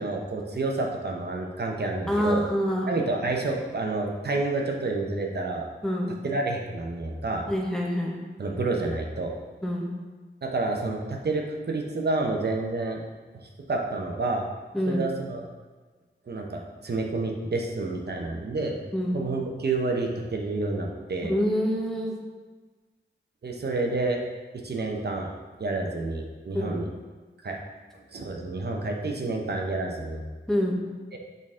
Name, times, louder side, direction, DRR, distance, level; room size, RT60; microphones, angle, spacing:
voice 1, 0.0-2.4 2.9-5.7 6.2-7.4 8.4-9.3 10.4-13.0 13.7-14.4 14.9-15.4 16.3-18.7 19.1-21.3 23.4-24.2 24.6-25.3 25.6-26.8 27.4-27.6 28.1-30.2 31.1-31.2, right 3 dB, 55° right, 1 dB, 0.9 m, -29 dB
voice 2, 2.1-2.9 5.8-6.2 7.5-8.2 9.6-9.9 14.7-15.1 18.9-19.2 21.2-22.2 26.5-26.8 30.5-30.8, equal, ahead, -1 dB, 0.9 m, -26 dB
6.4 x 4.0 x 3.7 m, 1.4 s
wide cardioid pair, 110°, 20 cm